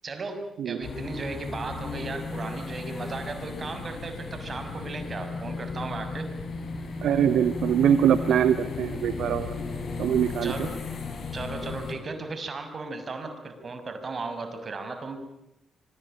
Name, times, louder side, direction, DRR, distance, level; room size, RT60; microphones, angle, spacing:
voice 1, 0.0-6.3 10.4-10.8 11.3-15.2, right 3 dB, 45° right, 7 dB, 6.3 m, -36 dB
sound 1, 0.8-12.0, left 4 dB, 55° left, 6.3 m, -35 dB
voice 2, 7.0-9.5 10.0-10.7, right 9 dB, 70° right, 13 dB, 1.0 m, -23 dB
25.5 x 22.0 x 9.0 m, 0.91 s
hypercardioid pair, 40°, 0 cm